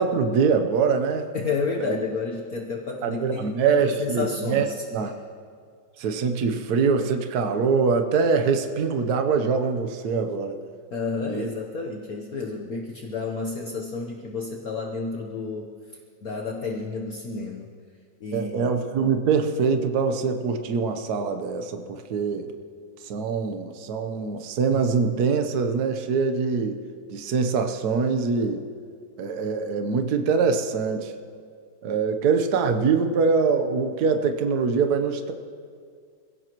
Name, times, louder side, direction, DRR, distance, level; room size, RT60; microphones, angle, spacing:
voice 1, 0.0-1.3 1.8-2.0 3.0-4.7 4.9-5.1 6.0-10.6 11.3-11.5 18.3-22.5 23.0-26.8 27.1-28.7 29.2-31.1 31.8-35.3, right 5 dB, 60° right, 6 dB, 1.4 m, -24 dB
voice 2, 1.3-4.8 10.9-15.7 16.2-17.7 18.2-18.7, left 4 dB, 55° left, 0 dB, 1.4 m, -31 dB
28.5 x 17.0 x 3.0 m, 2.1 s
omnidirectional pair, 2.0 m